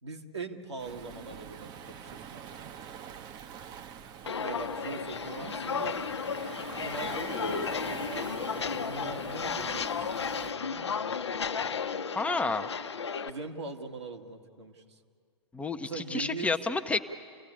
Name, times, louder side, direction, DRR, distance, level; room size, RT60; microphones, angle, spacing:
voice 1, 0.0-2.6 4.4-6.0 6.8-9.9 10.5-11.0 13.2-15.0 15.8-16.6, right 3 dB, 75° right, 2 dB, 2.1 m, -41 dB
Waves surf, 0.8-10.5, right 8 dB, 30° right, 0.9 m, -45 dB
Walk footsteps, 4.2-13.3, left 6 dB, 70° left, 0.9 m, -33 dB
voice 2, 12.2-12.7 15.5-17.0, left 3 dB, 10° left, 7 dB, 0.8 m, -30 dB
28.5 x 16.5 x 8.5 m, 2.1 s
figure-of-eight pair, 105°, 15 cm